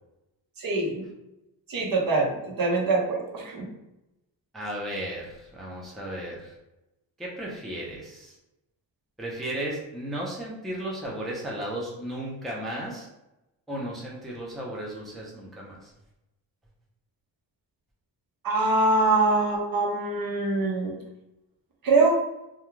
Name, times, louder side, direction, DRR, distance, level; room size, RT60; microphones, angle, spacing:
voice 1, 0.6-1.1 1.7-3.7 18.4-21.0 21.8-22.2, right 3 dB, 50° right, -2 dB, 0.8 m, -24 dB
voice 2, 4.5-6.5 7.2-8.3 9.2-13.1 13.7-15.9, right 1 dB, ahead, -4 dB, 0.5 m, -35 dB
2.4 x 2.3 x 3.0 m, 0.93 s
cardioid pair, 110°, 43 cm